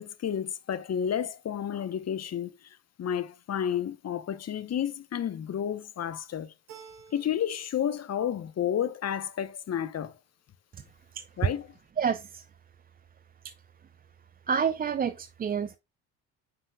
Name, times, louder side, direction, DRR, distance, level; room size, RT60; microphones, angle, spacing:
voice 1, 0.0-2.5 3.0-6.5 7.1-10.1 11.4-11.7, left 9 dB, 35° left, 0.9 m, -31 dB
Keyboard (musical), 6.7-7.8 8.1-8.9, right 7 dB, 75° right, 3.3 m, -52 dB
voice 2, 12.0-12.5 13.4-13.5 14.5-15.8, right 7 dB, 20° right, 0.4 m, -29 dB
9.6 x 5.6 x 2.2 m
hypercardioid pair, 60°, 43 cm